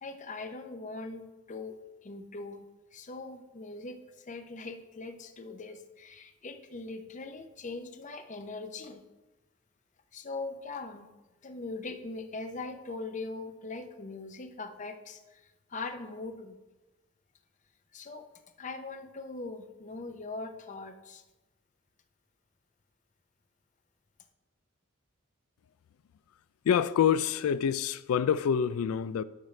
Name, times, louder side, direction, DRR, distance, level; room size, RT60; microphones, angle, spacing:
voice 1, 0.0-2.6 2.9-9.0 10.1-11.1 11.4-15.4 15.7-16.6 17.9-18.3 18.6-21.2, left 3 dB, 35° left, 0.6 m, -41 dB
voice 2, 26.6-29.2, left 8 dB, 85° left, 0.3 m, -26 dB
12.0 x 6.2 x 3.2 m
head